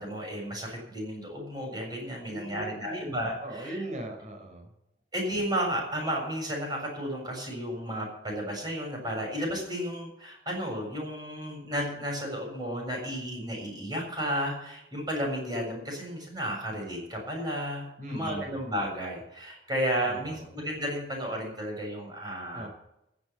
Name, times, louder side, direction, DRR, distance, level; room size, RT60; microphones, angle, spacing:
voice 1, 0.0-3.8 5.1-22.7, equal, 25° right, 0 dB, 7.0 m, -33 dB
voice 2, 2.3-3.1 3.4-4.7 18.0-18.5 20.0-20.5 22.5-22.7, right 1 dB, 45° right, 4 dB, 4.1 m, -39 dB
16.5 x 7.0 x 8.8 m, 0.86 s
head